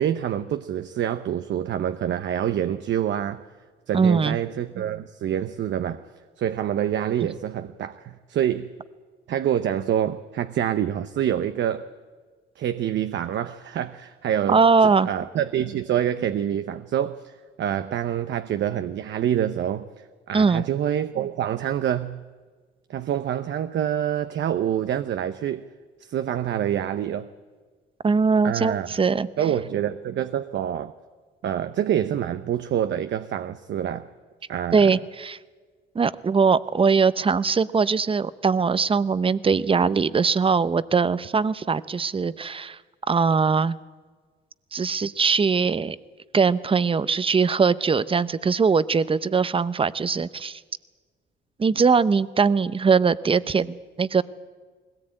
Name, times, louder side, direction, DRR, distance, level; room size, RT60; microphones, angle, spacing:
voice 1, 0.0-3.4 3.9-6.0 6.4-8.7 9.3-11.9 12.6-17.3 17.6-22.2 22.9-25.6 26.0-27.3 28.4-29.0 29.4-30.9 31.4-34.1 34.5-35.0, right 10 dB, 65° right, 0.8 m, -26 dB
voice 2, 3.9-4.4 14.5-15.1 20.3-20.6 28.0-29.3 34.7-35.4 35.9-42.8 43.1-43.8 44.7-46.0 46.3-50.6 51.6-54.2, right 5 dB, 25° right, 0.7 m, -21 dB
21.0 x 17.5 x 8.9 m
cardioid pair, 90°, 20 cm